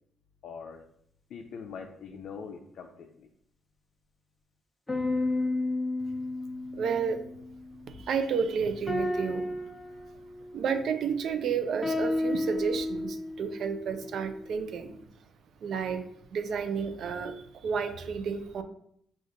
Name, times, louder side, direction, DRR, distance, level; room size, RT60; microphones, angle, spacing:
voice 1, 0.4-0.8 1.3-3.3, left 6 dB, 70° left, 2 dB, 0.4 m, -43 dB
sound 1, 4.9-7.9 8.9-11.2 11.8-14.8, left 2 dB, 15° left, 0.7 m, -33 dB
voice 2, 6.7-7.2 8.0-9.6 10.5-15.0 15.6-16.0 16.3-18.6, right 6 dB, 65° right, 8 dB, 0.5 m, -31 dB
5.1 x 2.4 x 3.9 m, 0.68 s
cardioid pair, 90°, 0 cm